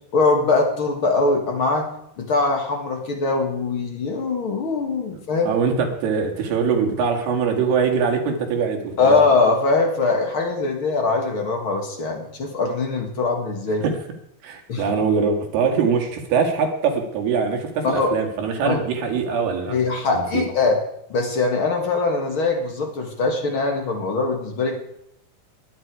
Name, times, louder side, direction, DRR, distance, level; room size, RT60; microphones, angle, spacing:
voice 1, 0.1-1.9 2.2-5.6 9.0-13.8 14.7-14.8 17.8-18.1 18.6-18.8 19.7-20.8 21.1-24.8, left 3 dB, 45° left, 2 dB, 1.9 m, -22 dB
voice 2, 5.5-9.2 13.8-14.0 14.4-19.8 20.1-20.5, right 5 dB, 80° right, 2 dB, 4.0 m, -22 dB
21.0 x 9.3 x 4.8 m, 0.76 s
omnidirectional pair, 4.5 m